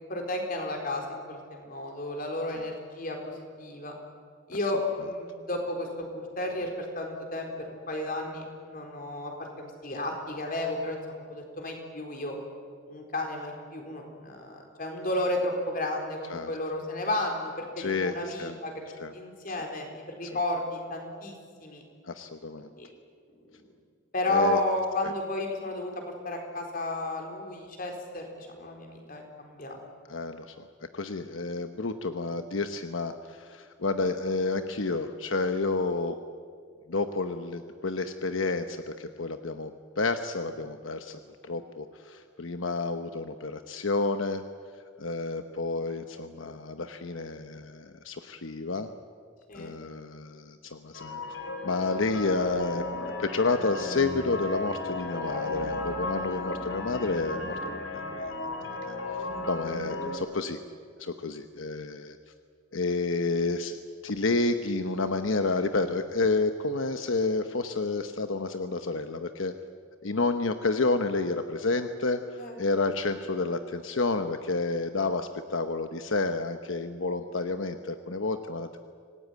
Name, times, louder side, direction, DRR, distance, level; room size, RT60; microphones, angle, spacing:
voice 1, 0.1-3.9 4.5-12.4 12.9-21.3 21.6-21.8 22.7-22.9 23.5-23.6 24.1-29.8 49.5-49.7 56.3-56.5 72.4-72.6, left 1 dB, 45° left, 2 dB, 4.2 m, -33 dB
voice 2, 17.8-18.6 19.0-19.1 19.5-19.6 20.2-20.4 22.1-22.7 24.3-24.6 30.1-30.5 30.9-36.2 36.9-44.4 45.0-48.9 49.5-51.2 51.6-52.8 53.2-58.3 58.7-58.8 59.5-60.6 61.0-62.2 62.7-69.5 70.0-72.2 72.6-78.8, left 3 dB, 85° left, 8 dB, 1.0 m, -30 dB
sound 1, 50.9-60.2, left 2 dB, 70° left, 3.5 m, -34 dB
26.0 x 18.5 x 9.3 m, 2.1 s
head